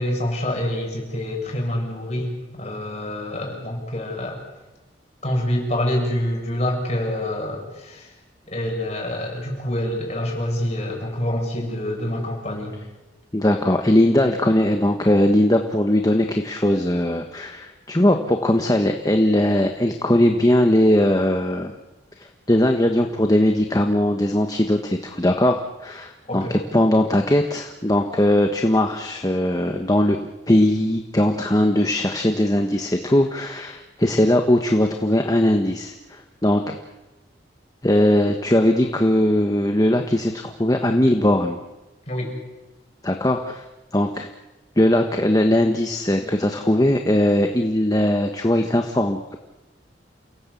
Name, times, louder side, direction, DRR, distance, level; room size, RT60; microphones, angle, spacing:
voice 1, 0.0-4.4 5.2-8.1 8.5-12.8 26.3-26.6 42.1-42.3, left 1 dB, 35° left, -1 dB, 7.8 m, -26 dB
voice 2, 13.3-21.7 22.2-30.2 30.5-36.8 37.8-41.6 43.0-43.6 43.9-44.3 44.8-49.4, left 1 dB, 20° left, 4 dB, 1.3 m, -19 dB
29.0 x 18.0 x 8.5 m, 1.1 s
head